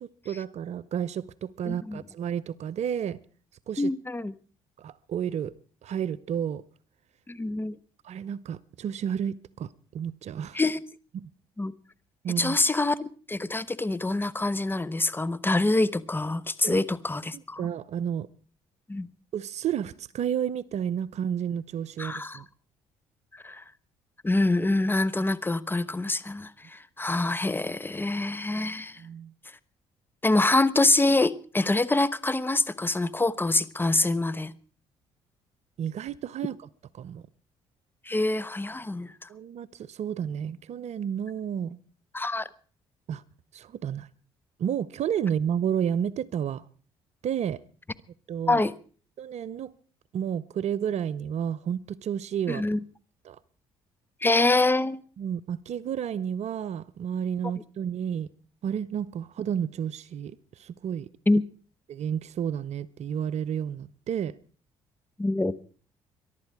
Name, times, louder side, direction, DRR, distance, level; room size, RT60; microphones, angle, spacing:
voice 1, 0.0-3.2 3.7-3.9 4.8-5.5 5.8-6.6 8.0-9.7 9.9-10.6 11.1-11.3 12.2-12.6 16.6-16.8 17.6-18.3 19.3-22.4 28.6-29.3 35.8-36.6 36.9-37.2 39.3-41.8 43.1-43.2 43.5-44.1 44.6-46.6 47.2-47.6 48.3-48.6 49.2-49.7 50.1-52.6 53.2-53.4 55.2-58.3 58.6-61.1 61.9-64.3, right 8 dB, 60° right, 0.7 m, -31 dB
voice 2, 1.7-2.0 3.8-4.3 7.3-7.8 10.5-10.8 11.6-11.7 12.4-17.7 18.9-19.1 22.0-22.4 23.3-23.6 24.2-29.0 30.2-34.5 38.1-39.3 42.1-42.5 48.5-48.7 52.5-52.8 54.2-55.0 61.3-61.4 65.2-65.5, left 2 dB, 15° left, 1.0 m, -25 dB
22.5 x 11.5 x 4.8 m
supercardioid pair, 60°, 13 cm